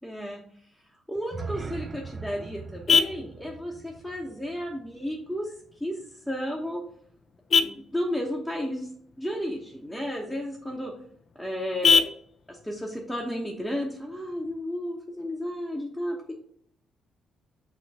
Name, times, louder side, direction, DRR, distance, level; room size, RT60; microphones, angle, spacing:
voice 1, 0.0-0.4 1.1-5.5 5.8-5.9 6.3-6.8 7.6-8.9 9.2-10.9 11.4-12.0 12.5-16.3, equal, ahead, -2 dB, 1.1 m, -33 dB
sound 1, 1.1-5.2, right 4 dB, 35° right, 0.4 m, -41 dB
Vehicle horn car horn honking, 1.6-14.6, left 5 dB, 50° left, 0.5 m, -31 dB
6.1 x 2.9 x 5.5 m, 0.63 s
cardioid pair, 90°, 0 cm